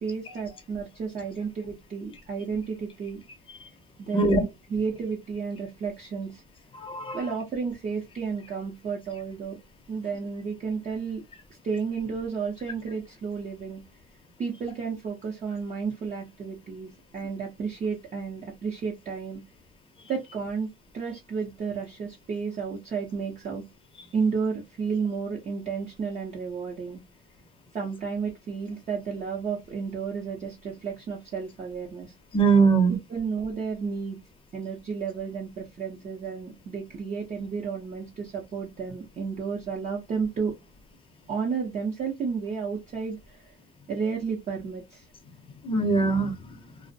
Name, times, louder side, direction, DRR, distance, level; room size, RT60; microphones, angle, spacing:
voice 1, 0.0-3.2 4.0-6.4 7.1-9.6 9.9-11.2 11.6-13.8 14.4-19.4 20.1-20.7 20.9-23.6 24.1-27.0 27.7-32.1 33.1-34.2 34.5-40.5 41.3-43.5 43.9-45.1, right 5 dB, 35° right, 0.6 m, -32 dB
voice 2, 6.7-7.2 32.3-33.0 45.6-46.3, right 4 dB, 25° left, 0.6 m, -21 dB
2.4 x 2.0 x 2.5 m
cardioid pair, 145°, 21 cm